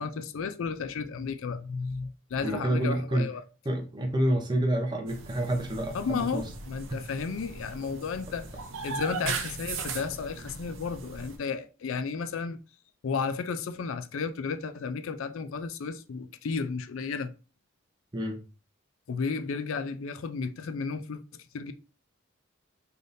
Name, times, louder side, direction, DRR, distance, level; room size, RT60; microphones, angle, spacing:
voice 1, 0.0-3.4 5.9-8.5 8.8-12.6 13.0-17.3 19.1-21.2 21.5-21.7, left 5 dB, 75° left, 0.4 m, -33 dB
voice 2, 2.4-3.3 3.6-6.5 6.9-7.0 9.2-9.3 18.1-18.4, right 1 dB, 20° right, 0.6 m, -28 dB
sound 1, 5.1-11.4, right 4 dB, 75° right, 0.7 m, -38 dB
3.9 x 3.4 x 2.6 m
head